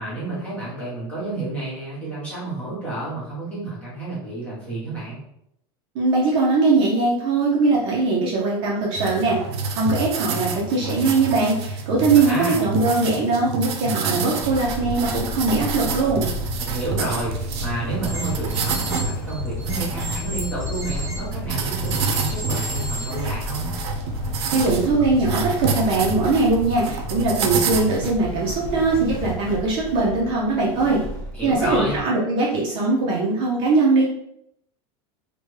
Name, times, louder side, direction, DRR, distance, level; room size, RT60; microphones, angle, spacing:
voice 1, 0.0-5.2 12.1-12.6 16.6-23.7 31.3-32.0, right 2 dB, 10° left, -8 dB, 1.1 m, -30 dB
voice 2, 5.9-9.4 9.7-16.3 24.5-31.0 31.4-34.0, right 3 dB, 35° right, -4 dB, 0.6 m, -21 dB
sound 1, 8.9-28.1, right 4 dB, 85° right, 0.5 m, -28 dB
sound 2, 14.4-32.0, left 1 dB, 55° left, 0.6 m, -33 dB
sound 3, 18.0-21.2 21.9-23.2, equal, 20° right, 1.0 m, -34 dB
3.1 x 2.2 x 3.1 m, 0.76 s
supercardioid pair, 175°, 13 cm